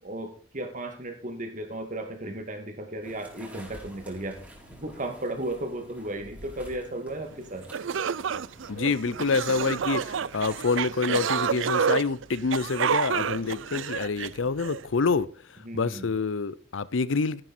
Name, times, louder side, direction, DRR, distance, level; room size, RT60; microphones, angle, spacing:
voice 1, 0.0-4.4 4.7-7.6 15.6-16.1, right 1 dB, 40° right, 2.4 m, -35 dB
sound 1, 3.0-11.1, equal, 10° right, 3.9 m, -50 dB
sound 2, 7.3-7.4 7.7-14.8, right 7 dB, 80° right, 0.5 m, -29 dB
voice 2, 8.7-15.3 15.7-17.4, left 4 dB, 85° left, 0.6 m, -27 dB
13.5 x 11.0 x 4.3 m
head